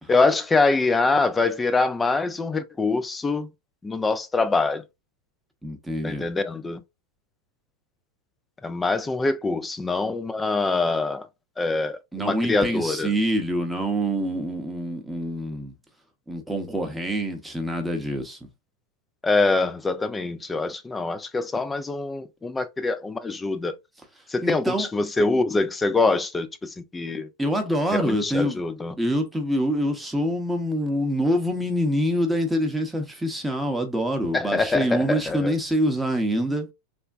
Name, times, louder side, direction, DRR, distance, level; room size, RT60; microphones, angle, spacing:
voice 1, 0.1-3.5 3.8-4.8 6.0-6.8 8.6-11.3 11.6-13.1 19.2-23.8 24.3-27.3 27.9-28.9 34.3-35.5, left 3 dB, 15° left, 0.4 m, -24 dB
voice 2, 5.6-6.3 12.1-15.7 16.3-18.4 24.4-24.9 27.4-28.6 29.0-36.7, equal, 5° right, 0.8 m, -25 dB
3.3 x 2.1 x 2.4 m
hypercardioid pair, 115°, 0 cm